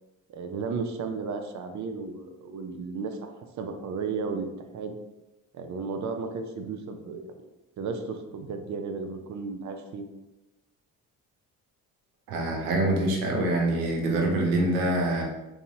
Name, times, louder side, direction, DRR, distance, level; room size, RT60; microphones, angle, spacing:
voice 1, 0.3-4.5 4.7-5.0 5.5-7.4 7.8-10.1, right 4 dB, 40° right, 6 dB, 0.5 m, -34 dB
voice 2, 12.3-15.2, right 1 dB, 90° right, 0 dB, 0.6 m, -25 dB
2.8 x 2.3 x 2.7 m, 1.0 s
hypercardioid pair, 45°, 44 cm